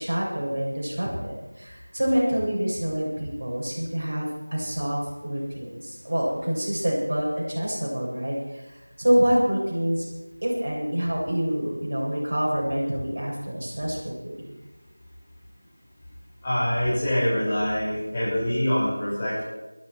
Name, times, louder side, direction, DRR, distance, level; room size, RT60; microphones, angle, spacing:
voice 1, 0.0-10.1 10.4-14.5, equal, 45° right, -4 dB, 7.3 m, -26 dB
voice 2, 16.4-19.4, equal, 15° left, -10 dB, 6.4 m, -25 dB
22.0 x 12.0 x 4.7 m, 1.0 s
figure-of-eight pair, 175°, 0 cm